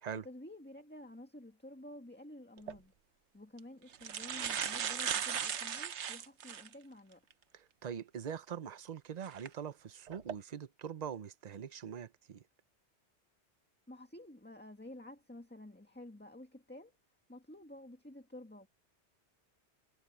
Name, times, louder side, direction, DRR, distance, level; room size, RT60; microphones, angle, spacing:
voice 1, 0.2-2.9 3.3-7.2 13.9-16.9 17.3-18.7, left 1 dB, 10° left, 1.7 m, -51 dB
sound 1, 2.6-2.8 3.6-3.7 3.9-6.7 7.3-7.4 9.3-9.5 10.1-10.3, right 8 dB, 85° right, 1.2 m, -37 dB
voice 2, 7.5-12.4, right 8 dB, 40° right, 0.8 m, -43 dB
omnidirectional pair, 1.1 m